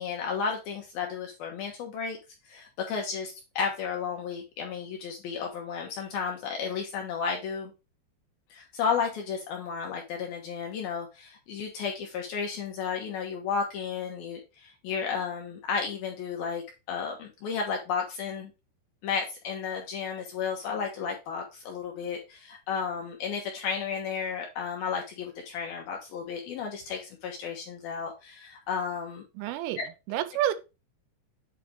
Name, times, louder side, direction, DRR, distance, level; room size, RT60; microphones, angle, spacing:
voice 1, 0.0-2.2 2.5-7.7 8.5-18.5 19.0-29.2 29.8-29.9, left 6 dB, 70° left, 2.4 m, -33 dB
voice 2, 29.4-29.8 30.1-30.5, right 12 dB, 90° right, 3.3 m, -28 dB
8.3 x 3.3 x 4.9 m
omnidirectional pair, 5.5 m